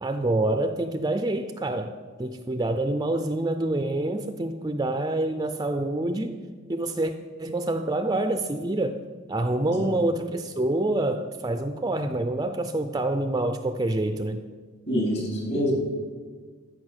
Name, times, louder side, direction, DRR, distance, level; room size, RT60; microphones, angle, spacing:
voice 1, 0.0-6.4 6.7-7.1 7.4-9.0 9.3-14.4, right 2 dB, 20° right, 0.5 m, -27 dB
voice 2, 14.9-15.8, equal, 55° left, 4.3 m, -26 dB
14.0 x 5.7 x 8.0 m
head